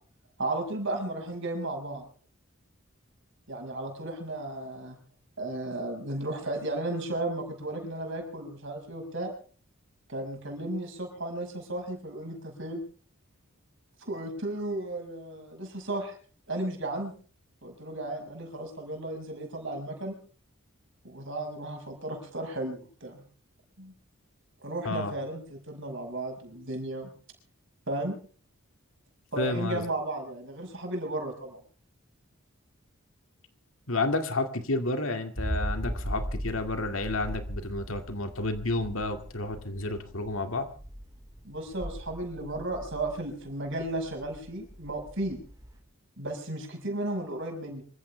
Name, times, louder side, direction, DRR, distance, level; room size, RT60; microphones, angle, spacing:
voice 1, 0.4-2.0 3.5-5.0 5.4-9.3 10.1-12.8 14.0-16.1 16.5-17.1 17.6-20.1 21.0-23.2 23.8-23.9 24.6-27.1 27.9-28.2 29.3-31.6 41.4-45.4 46.2-47.8, right 2 dB, 55° right, 3 dB, 6.0 m, -34 dB
voice 2, 24.8-25.2 29.4-29.8 33.9-40.7, left 2 dB, 65° left, 6 dB, 2.3 m, -31 dB
sound 1, 35.3-45.8, equal, 15° right, 4.3 m, -38 dB
25.5 x 15.5 x 3.4 m, 0.42 s
head